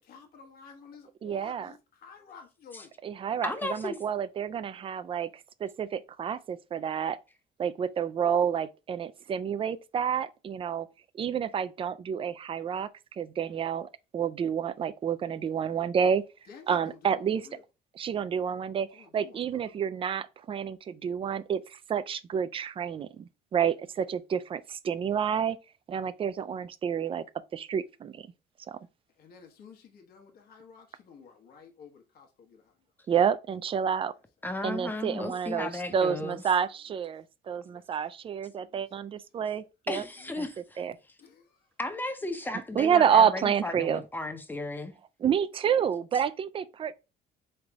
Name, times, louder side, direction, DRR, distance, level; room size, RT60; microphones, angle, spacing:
voice 1, 0.0-2.9 16.5-17.6 18.1-18.4 18.9-19.8 29.2-32.7 35.4-35.5 36.1-36.2 36.9-37.0 37.5-37.8 38.5-39.1 40.2-40.5 41.2-41.7, left 6 dB, 65° left, 1.1 m, -53 dB
voice 2, 1.2-1.7 3.0-7.2 7.6-10.9 11.1-16.2 16.7-17.5 18.0-25.6 25.9-27.2 27.5-28.3 28.7-28.8 33.1-34.1 34.6-40.0 40.8-40.9 42.8-44.0 45.2-46.9, right 8 dB, 30° right, 0.4 m, -29 dB
voice 3, 3.4-4.0 34.4-36.4 39.9-40.8 41.8-44.9, left 2 dB, 10° left, 0.7 m, -34 dB
3.9 x 3.3 x 3.4 m
cardioid pair, 110°, 17 cm